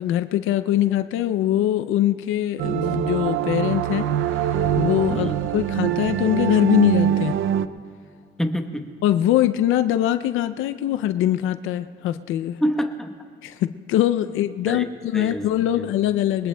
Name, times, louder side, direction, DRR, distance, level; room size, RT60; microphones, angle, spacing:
voice 1, 0.0-4.1 4.8-7.4 9.0-12.6 13.4-16.5, left 12 dB, 90° left, 12 dB, 0.5 m, -22 dB
sound 1, 2.6-7.7, right 10 dB, 80° right, 0.5 m, -23 dB
voice 2, 8.4-8.9 12.6-13.1 14.7-14.8 15.1-15.9, equal, ahead, 3 dB, 1.0 m, -27 dB
22.0 x 20.5 x 2.2 m, 2.3 s
cardioid pair, 90°, 20 cm